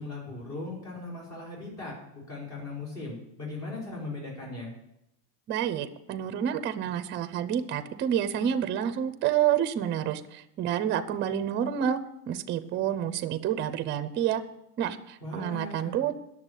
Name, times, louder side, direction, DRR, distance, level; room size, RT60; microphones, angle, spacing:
voice 1, 0.0-4.7 15.2-16.0, left 2 dB, 35° left, -4 dB, 5.3 m, -38 dB
voice 2, 5.5-12.0 12.3-14.4 14.8-16.2, right 9 dB, 25° right, 12 dB, 0.5 m, -29 dB
10.5 x 7.0 x 8.2 m, 0.83 s
cardioid pair, 155°, 43 cm